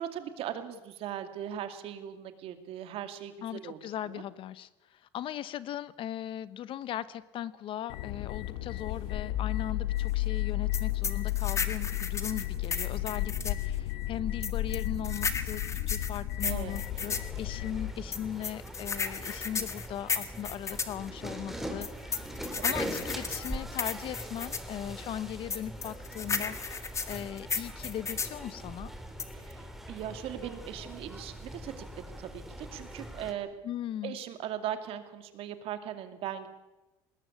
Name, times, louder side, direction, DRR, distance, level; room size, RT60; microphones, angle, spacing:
voice 1, 0.0-4.2 16.4-16.8 22.5-22.7 29.3-33.5 34.0-36.5, right 10 dB, 60° right, 9 dB, 2.4 m, -39 dB
voice 2, 3.4-22.3 22.6-28.9 33.6-34.1, left 11 dB, 50° left, 17 dB, 1.0 m, -38 dB
sound 1, 7.9-17.9, left 14 dB, 85° left, 1.3 m, -33 dB
sound 2, 10.7-13.6 14.4-17.3 18.1-21.0 21.8-24.7 25.5-28.4 29.2-29.5, left 5 dB, 25° left, 1.7 m, -34 dB
sound 3, 16.4-33.3, equal, ahead, 3.1 m, -42 dB
20.5 x 19.0 x 8.5 m, 1.1 s
supercardioid pair, 105°, 11 cm